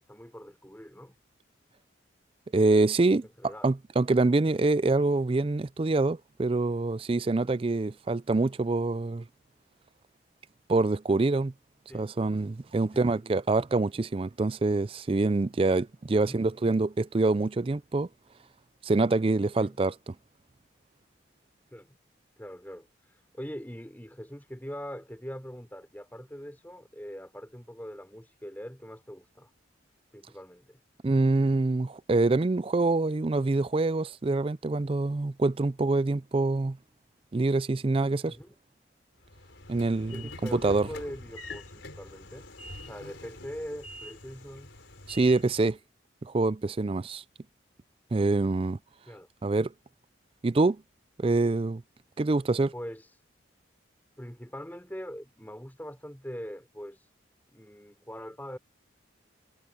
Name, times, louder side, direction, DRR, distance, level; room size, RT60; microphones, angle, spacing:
voice 1, 0.1-1.1 3.4-3.7 11.9-12.1 12.9-13.2 16.1-16.4 19.6-19.8 21.7-22.0 22.4-29.5 30.1-30.8 38.2-38.5 39.9-42.5 42.8-44.7 49.1-49.3 52.7-53.2 54.2-57.1 57.5-58.6, equal, 10° left, 5.2 m, -42 dB
voice 2, 2.5-9.2 10.7-11.5 11.9-18.1 18.8-20.1 31.0-36.8 37.3-38.4 39.7-40.9 45.1-45.8 46.2-47.2 48.1-48.8 49.4-49.7 50.4-50.8 51.2-51.8 52.2-52.7, right 3 dB, 30° right, 0.4 m, -25 dB
Train / Sliding door, 39.3-45.8, left 1 dB, 70° left, 4.1 m, -45 dB
head